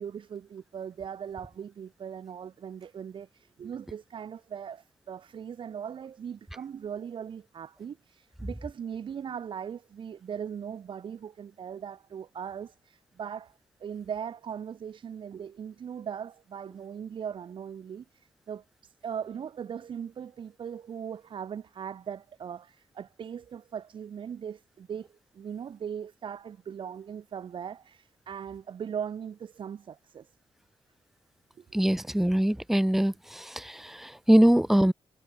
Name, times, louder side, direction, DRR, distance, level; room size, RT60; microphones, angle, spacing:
voice 1, 0.0-30.3 31.6-31.8, right 8 dB, 50° right, 1.5 m, -39 dB
voice 2, 31.7-34.9, right 1 dB, 5° right, 0.4 m, -23 dB
wide cardioid pair, 165°, 11 cm